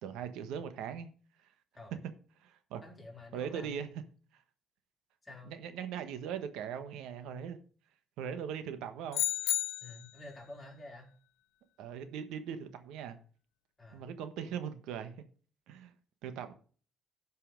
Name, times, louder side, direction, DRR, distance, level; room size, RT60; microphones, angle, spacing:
voice 1, 0.0-1.1 2.4-2.8 3.3-3.9 4.3-4.4 5.5-7.6 8.2-9.2 11.8-13.2 13.9-15.1 15.7-15.9 16.2-16.5, right 8 dB, 85° right, 1.3 m, -40 dB
voice 2, 2.8-4.0 5.2-5.5 9.8-11.1 13.8-14.0, left 2 dB, 15° left, 3.8 m, -49 dB
sound 1, 9.1-10.2, left 15 dB, 90° left, 0.5 m, -32 dB
11.5 x 5.6 x 5.2 m
cardioid pair, 120°, 0 cm